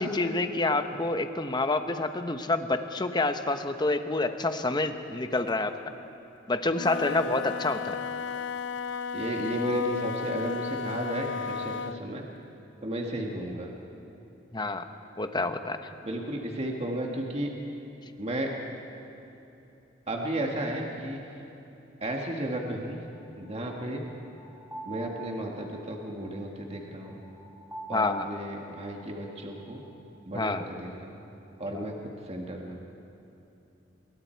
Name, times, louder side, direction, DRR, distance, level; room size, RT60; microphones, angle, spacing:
voice 1, 0.1-5.7 6.5-7.9 14.5-14.8 15.2-15.8 27.9-28.3 30.3-30.7 31.7-31.8, left 2 dB, 25° left, 8 dB, 0.9 m, -28 dB
Wind instrument woodwind instrument, 6.6-12.1, left 5 dB, 70° left, 0.5 m, -34 dB
voice 2, 9.1-12.2 12.8-13.7 16.0-17.5 18.2-18.5 20.1-21.2 22.0-23.0 23.4-24.0 24.9-27.2 27.9-29.8 30.3-31.2 31.6-32.0 32.3-32.8, right 1 dB, 35° right, 0 dB, 1.8 m, -33 dB
sound 1, 23.1-30.0, right 3 dB, 10° right, 3.3 m, -46 dB
27.5 x 22.5 x 4.6 m, 2.9 s
head